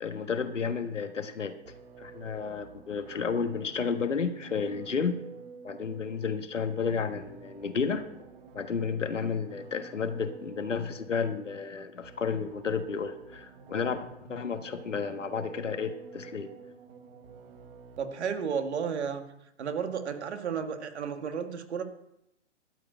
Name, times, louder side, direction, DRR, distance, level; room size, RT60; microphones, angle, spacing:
voice 1, 0.0-1.6 2.0-5.2 5.6-8.0 8.5-16.5, left 5 dB, 85° left, 8 dB, 1.5 m, -32 dB
sound 1, 1.7-18.3, right 5 dB, 50° right, 1.3 m, -50 dB
voice 2, 18.0-19.2 19.6-21.8, right 6 dB, 65° right, 7 dB, 1.7 m, -32 dB
13.0 x 5.1 x 8.8 m, 0.82 s
hypercardioid pair, 135°, 36 cm